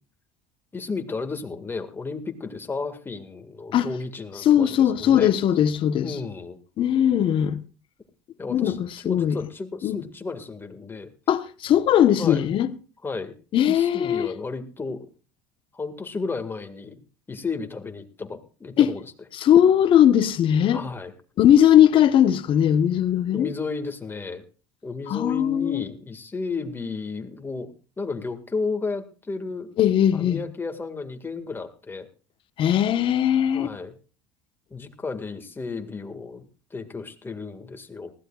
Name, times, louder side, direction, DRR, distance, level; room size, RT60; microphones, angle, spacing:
voice 1, 0.7-5.3 6.0-6.6 8.4-8.8 9.0-11.1 12.2-12.5 13.0-13.3 13.7-15.1 15.7-16.9 17.3-19.1 20.7-21.1 23.3-24.4 24.8-29.7 30.1-32.1 33.5-33.9 34.7-36.5 36.7-38.1, left 4 dB, 20° left, 2.0 m, -33 dB
voice 2, 4.4-6.1 6.8-7.6 8.5-9.4 9.8-10.0 11.3-12.7 13.5-14.3 18.8-18.9 19.4-20.8 21.4-23.5 25.1-25.8 29.8-30.4 32.6-33.7, left 10 dB, 50° left, 1.2 m, -19 dB
19.5 x 15.5 x 2.5 m
supercardioid pair, 95°, 12 cm